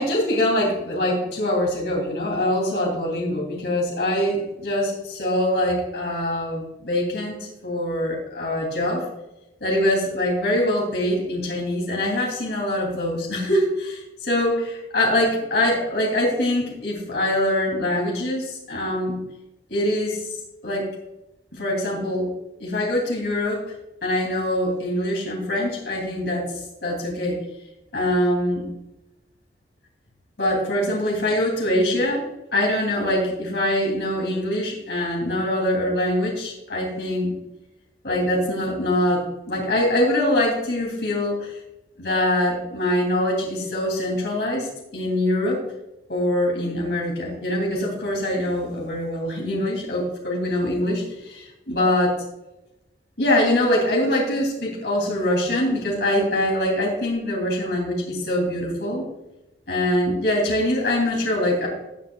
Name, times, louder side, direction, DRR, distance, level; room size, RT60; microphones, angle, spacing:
voice 1, 0.0-7.4 7.6-9.0 9.6-19.2 19.7-20.2 20.6-20.9 21.5-22.3 22.6-23.6 24.0-26.5 26.8-27.4 27.9-28.6 30.4-32.2 32.5-37.3 38.0-41.6 42.0-44.7 44.9-45.6 46.1-52.1 53.2-59.1 59.7-61.7, left 1 dB, 75° left, -1 dB, 2.9 m, -23 dB
14.5 x 7.8 x 2.3 m, 0.93 s
head